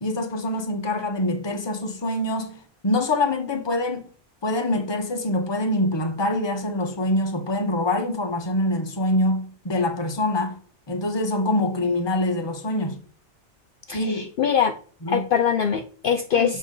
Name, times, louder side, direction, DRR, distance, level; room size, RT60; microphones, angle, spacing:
voice 1, 0.0-4.1 4.4-10.6 10.9-13.0 13.9-14.3 15.0-15.3 16.3-16.5, left 1 dB, 25° left, 0.8 m, -25 dB
voice 2, 13.9-14.7 15.1-16.6, left 7 dB, 60° left, 0.7 m, -23 dB
7.1 x 4.1 x 3.7 m
omnidirectional pair, 1.2 m